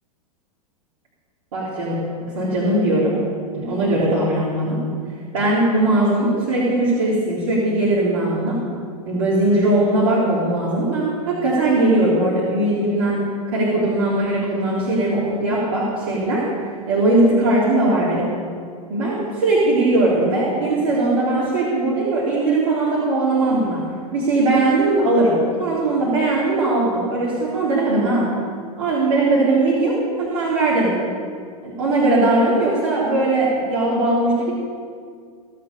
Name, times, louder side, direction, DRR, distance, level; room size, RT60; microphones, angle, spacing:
voice 1, 1.5-2.1 2.3-3.2 3.5-4.9 5.3-8.6 9.1-16.5 16.9-18.3 18.9-28.3 28.8-31.0 31.6-34.5, right 2 dB, 65° right, -7 dB, 3.7 m, -19 dB
17.0 x 7.6 x 6.9 m, 2.1 s
hypercardioid pair, 105°, 19 cm